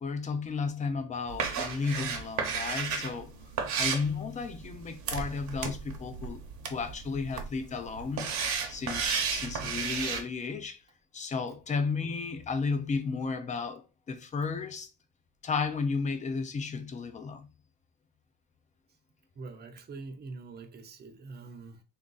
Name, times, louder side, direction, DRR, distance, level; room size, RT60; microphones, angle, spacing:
voice 1, 0.0-3.3 3.8-6.4 6.7-8.4 8.7-10.8 11.1-14.9 15.4-17.5, left 4 dB, 20° left, 0.4 m, -33 dB
sound 1, 1.3-10.2, right 6 dB, 50° right, 0.9 m, -34 dB
voice 2, 19.4-21.8, right 3 dB, 25° right, 0.6 m, -44 dB
3.5 x 2.6 x 3.8 m
cardioid pair, 160°, 36 cm